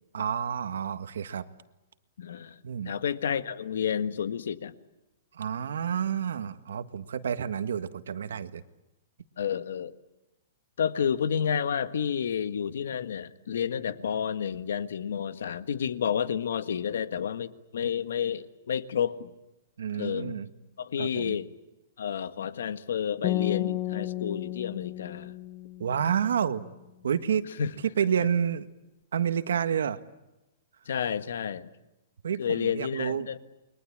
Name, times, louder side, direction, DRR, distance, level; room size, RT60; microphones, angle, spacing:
voice 1, 0.1-1.5 2.6-2.9 5.3-8.6 19.8-20.5 21.0-21.4 25.8-26.7 27.0-27.4 28.0-28.7 29.1-30.0 32.2-33.3, right 8 dB, 85° right, 11 dB, 1.6 m, -29 dB
voice 2, 2.2-2.6 2.8-4.7 9.4-9.9 10.8-19.3 19.9-20.4 20.8-21.5 22.0-25.3 27.6-27.7 30.8-31.7 32.4-33.4, left 8 dB, 70° left, 12 dB, 1.5 m, -30 dB
sound 1, 23.2-26.4, left 15 dB, 30° left, 1.0 m, -33 dB
29.5 x 23.0 x 8.7 m, 1.0 s
hypercardioid pair, 175°, 0 cm